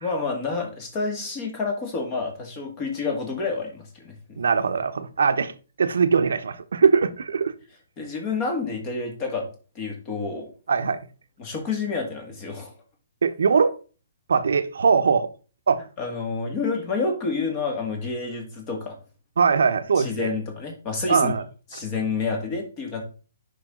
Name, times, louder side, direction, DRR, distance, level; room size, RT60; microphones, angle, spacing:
voice 1, 0.0-4.4 8.0-9.5 9.8-10.5 11.4-12.7 16.0-19.0 20.0-21.3 21.7-23.0, left 4 dB, 20° left, 2.1 m, -29 dB
voice 2, 4.4-5.5 5.8-7.5 10.7-11.0 13.2-13.7 14.3-15.3 15.7-15.8 19.4-20.3 21.1-21.4, right 5 dB, 90° right, 1.0 m, -21 dB
9.2 x 5.6 x 3.8 m
hypercardioid pair, 170°, 0 cm